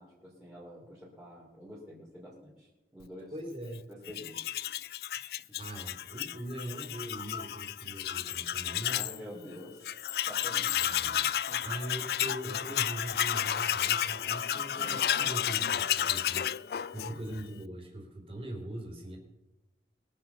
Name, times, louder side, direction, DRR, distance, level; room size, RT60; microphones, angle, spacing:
voice 1, 0.0-3.3 3.9-4.5 5.5-5.6 8.9-10.0 10.2-10.9 11.5-11.7, equal, 5° right, -8 dB, 2.8 m, -48 dB
voice 2, 3.3-3.9 5.6-9.0 10.8-11.3 11.6-19.2, right 1 dB, 30° right, 1 dB, 3.3 m, -41 dB
Tools, 4.1-9.2 9.5-9.6 9.8-17.4, left 10 dB, 60° left, 0.3 m, -32 dB
21.5 x 7.4 x 5.7 m, 1.0 s
head